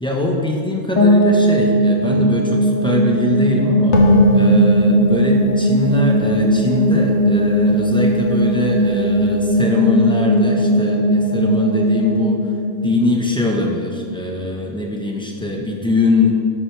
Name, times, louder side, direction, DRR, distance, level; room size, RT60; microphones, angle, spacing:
voice 1, 0.0-4.0 4.3-12.4 12.8-16.3, left 2 dB, 5° left, -1 dB, 1.2 m, -21 dB
sound 1, 1.0-13.8, equal, 30° left, 2.0 m, -18 dB
sound 2, 3.9-7.4, right 1 dB, 80° left, 1.6 m, -18 dB
12.0 x 9.5 x 3.5 m, 2.2 s
omnidirectional pair, 1.2 m